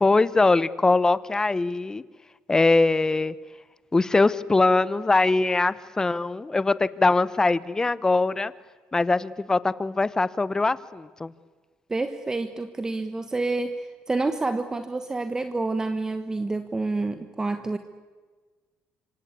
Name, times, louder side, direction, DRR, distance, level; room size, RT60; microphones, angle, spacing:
voice 1, 0.0-2.0 2.5-3.3 3.9-8.5 8.9-11.3, left 3 dB, 15° left, 17 dB, 0.9 m, -22 dB
voice 2, 11.9-17.8, right 3 dB, 15° right, 9 dB, 1.3 m, -28 dB
26.5 x 25.0 x 8.4 m, 1.4 s
cardioid pair, 115°, 4 cm